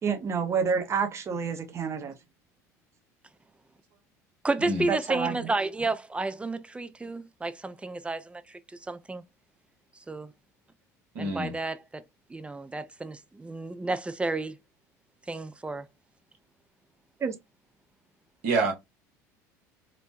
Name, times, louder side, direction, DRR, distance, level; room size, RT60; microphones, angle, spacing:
voice 1, 0.0-2.1 4.9-5.3 17.2-17.3, right 6 dB, 35° right, 0.8 m, -28 dB
voice 2, 4.4-9.2 10.1-10.3 11.2-12.0 12.3-14.6 15.3-15.9, right 2 dB, 15° right, 0.4 m, -31 dB
voice 3, 11.1-11.5 18.4-18.7, right 3 dB, 70° right, 1.2 m, -27 dB
3.0 x 2.1 x 2.5 m
hypercardioid pair, 70°, 9 cm